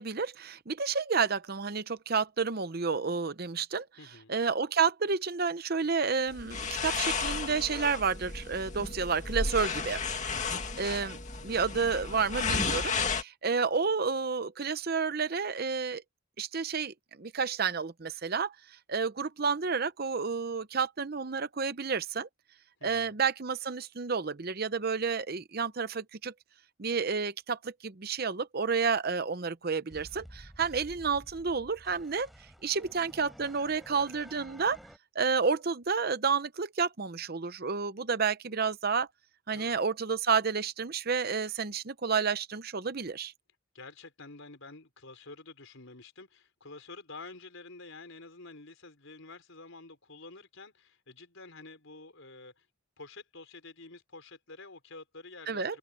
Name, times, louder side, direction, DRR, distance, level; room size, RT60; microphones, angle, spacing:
voice 1, 0.0-3.9 4.3-10.0 10.8-16.0 16.4-18.5 18.9-22.3 22.8-26.3 26.8-32.3 32.6-34.8 35.1-39.1 39.5-43.3 55.5-55.8, right 5 dB, 45° right, 0.7 m, -30 dB
voice 2, 4.0-4.3 10.2-10.4 22.8-23.2 39.5-39.8 43.7-52.7 53.0-55.8, left 3 dB, 65° left, 4.6 m, -49 dB
sound 1, 6.3-13.2, left 4 dB, 35° left, 2.1 m, -33 dB
sound 2, 29.9-35.0, equal, ahead, 3.8 m, -51 dB
open air
head